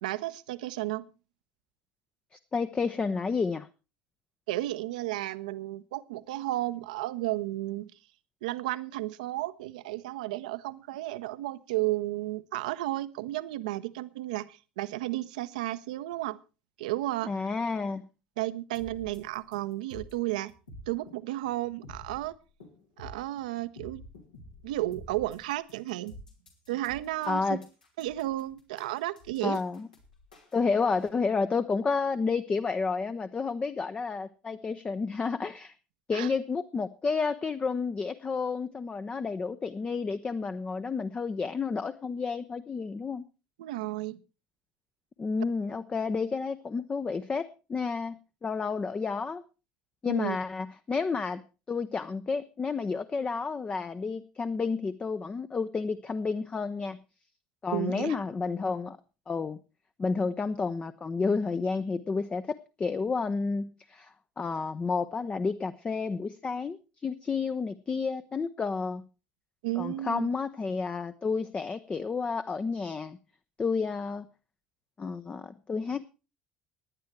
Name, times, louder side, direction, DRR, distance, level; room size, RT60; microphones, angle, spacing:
voice 1, 0.0-1.0 4.5-7.9 8.4-16.4 16.8-17.3 18.4-20.5 20.9-22.3 23.0-24.0 24.6-26.1 26.7-27.6 28.0-29.6 36.1-36.3 43.6-44.2 50.1-50.4 57.7-58.2 69.6-70.3, right 16 dB, 65° right, 14 dB, 0.7 m, -33 dB
voice 2, 2.3-3.7 17.3-18.0 27.3-27.6 29.4-29.9 30.5-35.7 36.1-43.2 45.2-48.1 48.4-49.4 50.0-51.4 51.7-57.0 57.6-59.0 59.3-59.6 60.0-69.0 69.8-73.2 73.6-74.3 75.0-76.0, left 4 dB, 25° left, 12 dB, 0.7 m, -31 dB
sound 1, 18.7-31.1, equal, 80° left, 2.9 m, -50 dB
17.0 x 10.5 x 4.5 m, 0.32 s
figure-of-eight pair, 65°, 4 cm